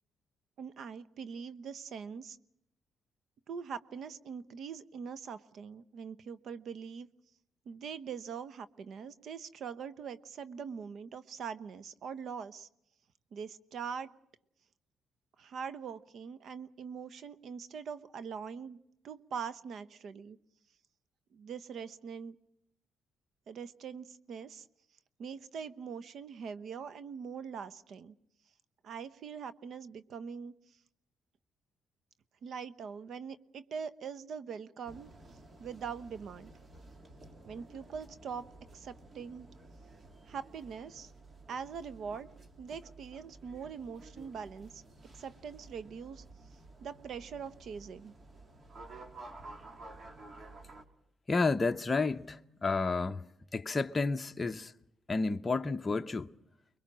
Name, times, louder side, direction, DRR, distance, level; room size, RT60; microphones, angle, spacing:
voice 1, 0.6-2.4 3.5-7.1 7.7-12.7 13.3-14.1 15.4-18.8 19.0-20.4 21.3-22.4 23.5-24.6 25.2-28.1 28.8-30.5 32.4-35.1 35.6-36.5 37.4-38.5 38.7-39.5 40.3-41.1 41.5-42.3 42.6-44.8 45.2-46.2 46.8-48.1, right 6 dB, 65° right, 1.0 m, -42 dB
sound 1, 34.8-50.8, right 2 dB, 30° right, 2.7 m, -53 dB
voice 2, 51.3-53.3 53.5-54.7 55.1-56.3, left 3 dB, 25° left, 0.9 m, -31 dB
25.0 x 22.5 x 6.2 m
cardioid pair, 90°, 0 cm